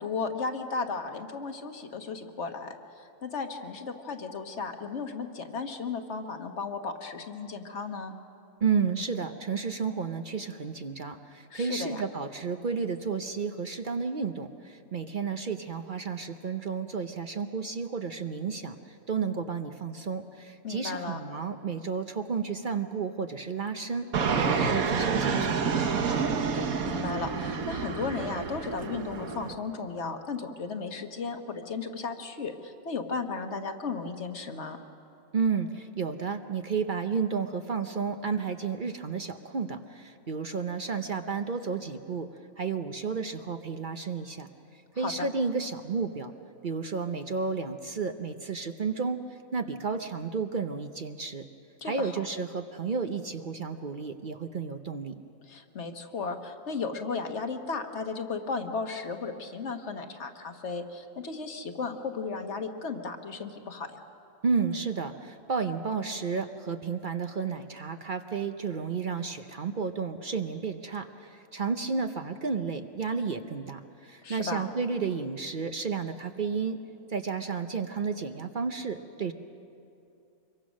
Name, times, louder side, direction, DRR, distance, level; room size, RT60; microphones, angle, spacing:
voice 1, 0.0-8.1 11.5-12.0 20.6-21.2 26.5-34.8 44.9-45.3 51.8-52.2 55.5-64.0 74.2-74.6, left 4 dB, 55° left, 6 dB, 1.5 m, -35 dB
voice 2, 8.6-18.8 19.1-24.1 24.3-26.3 35.3-42.3 42.6-44.5 45.0-46.3 46.6-49.2 49.5-51.5 51.8-55.1 64.4-76.8 77.1-79.3, right 5 dB, 45° right, 8 dB, 0.8 m, -32 dB
Fixed-wing aircraft airplane, 24.1-29.5, right 5 dB, 85° right, 1.6 m, -29 dB
25.5 x 23.0 x 6.3 m, 2.7 s
omnidirectional pair, 1.4 m